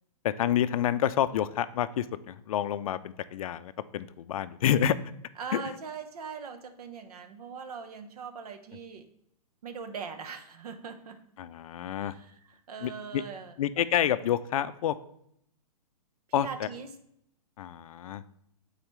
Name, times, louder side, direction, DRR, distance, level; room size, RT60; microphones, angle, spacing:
voice 1, 0.2-5.0 5.5-5.6 11.4-12.1 12.8-13.2 13.6-15.0 16.3-16.7 17.6-18.2, left 10 dB, 60° left, 14 dB, 0.4 m, -28 dB
voice 2, 5.4-9.1 9.6-11.2 12.0-13.5 16.3-17.0, right 6 dB, 75° right, 9 dB, 0.9 m, -41 dB
8.7 x 4.1 x 3.1 m, 0.74 s
hypercardioid pair, 150°, 20 cm